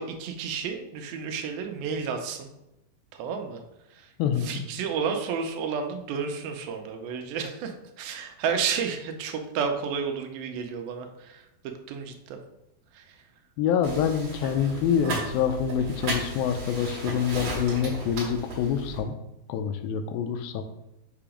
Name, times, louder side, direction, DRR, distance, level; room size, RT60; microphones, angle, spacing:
voice 1, 0.0-2.5 3.1-3.6 3.9-4.1 4.4-11.4 11.9-12.4 12.9-13.2, right 6 dB, 85° right, 5 dB, 2.5 m, -31 dB
voice 2, 4.2-4.6 13.6-19.2 19.5-20.6, left 8 dB, 85° left, 8 dB, 2.4 m, -26 dB
sound 1, 13.8-19.0, right 2 dB, 50° right, 2.4 m, -35 dB
6.8 x 2.9 x 4.9 m, 0.91 s
omnidirectional pair, 4.2 m